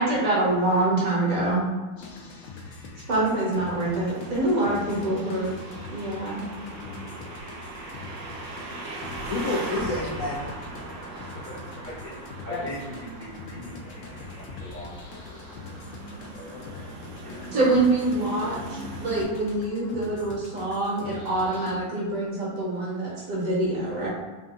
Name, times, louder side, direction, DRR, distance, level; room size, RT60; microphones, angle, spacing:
voice 1, 0.0-1.7 3.1-5.5 5.9-6.5 17.5-24.1, right 2 dB, 50° right, -5 dB, 1.4 m, -25 dB
sound 1, 2.0-21.7, left 3 dB, 85° left, 1.4 m, -43 dB
sound 2, 3.5-19.2, right 2 dB, 70° right, 1.3 m, -40 dB
voice 2, 4.4-5.2 6.7-7.2 11.4-11.6 11.8-12.1 12.4-14.0 14.4-15.0 15.3-15.4 16.3-16.6 17.0-17.7 18.4-18.6, equal, 30° left, -8 dB, 0.9 m, -41 dB
voice 3, 9.3-10.5 12.5-12.7 16.5-16.9 17.3-17.5, left 2 dB, 65° left, -5 dB, 0.9 m, -30 dB
3.7 x 2.6 x 3.6 m, 1.3 s
omnidirectional pair, 2.1 m